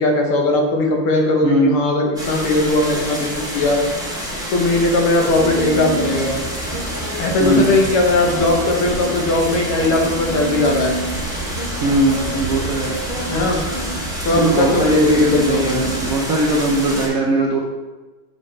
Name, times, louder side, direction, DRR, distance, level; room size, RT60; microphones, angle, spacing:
voice 1, 0.0-3.8 4.5-6.4 7.2-10.9 13.3-13.6 14.3-15.8, left 2 dB, 80° left, 1 dB, 1.9 m, -18 dB
voice 2, 1.4-1.8 7.4-7.9 11.8-12.9 14.3-17.6, right 1 dB, 70° right, -3 dB, 0.8 m, -19 dB
sound 1, 2.2-17.1, equal, 5° right, 0.8 m, -28 dB
sound 2, 5.3-16.0, right 1 dB, 40° left, 0.5 m, -28 dB
6.1 x 5.2 x 3.2 m, 1.2 s
omnidirectional pair, 2.4 m